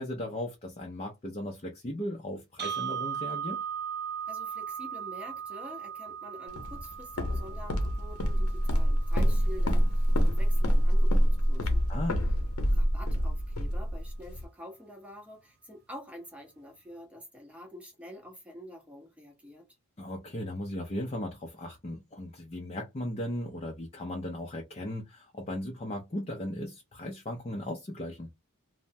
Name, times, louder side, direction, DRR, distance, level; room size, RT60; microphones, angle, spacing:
voice 1, 0.0-3.6 11.9-12.2 20.0-28.3, left 1 dB, 30° left, 0.5 m, -37 dB
sound 1, 2.6-10.6, right 8 dB, 45° right, 0.4 m, -39 dB
voice 2, 4.3-11.8 12.7-19.7, equal, 5° right, 0.7 m, -47 dB
Walk footsteps, 6.6-14.4, equal, 75° left, 0.7 m, -26 dB
3.3 x 2.0 x 2.6 m
head